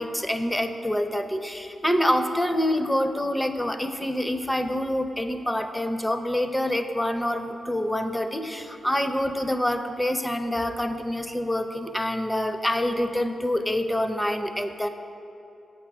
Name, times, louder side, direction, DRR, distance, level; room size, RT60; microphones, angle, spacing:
voice 1, 0.0-14.9, left 1 dB, 10° left, 8 dB, 0.5 m, -26 dB
6.7 x 6.0 x 4.8 m, 2.8 s
cardioid pair, 55°, 0 cm